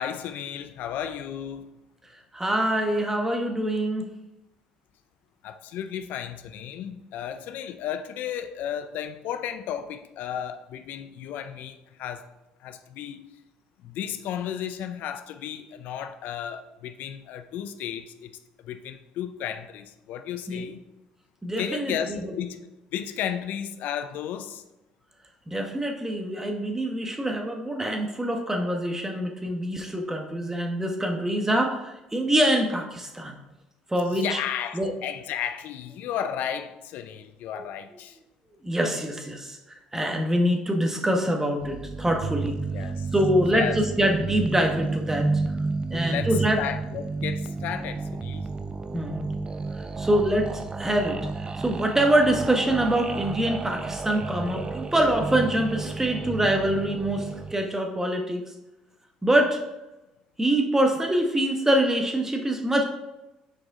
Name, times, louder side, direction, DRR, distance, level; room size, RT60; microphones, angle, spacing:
voice 1, 0.0-1.7 5.4-12.3 12.6-13.3 13.8-18.3 18.6-20.8 21.6-22.6 22.9-24.6 34.1-38.2 42.7-43.1 43.5-43.8 45.9-48.5, left 9 dB, 70° left, 0.4 m, -33 dB
voice 2, 2.3-4.0 20.5-20.6 21.4-22.2 25.5-33.4 33.9-34.4 34.7-34.9 37.6-37.7 38.6-39.6 39.9-42.6 43.1-45.3 45.9-46.6 48.9-49.2 49.8-58.4 59.2-59.6 60.4-62.8, right 1 dB, 15° right, 1.2 m, -25 dB
sound 1, 41.6-57.5, right 3 dB, 30° right, 0.6 m, -31 dB
6.4 x 4.8 x 3.7 m
supercardioid pair, 70°, 3 cm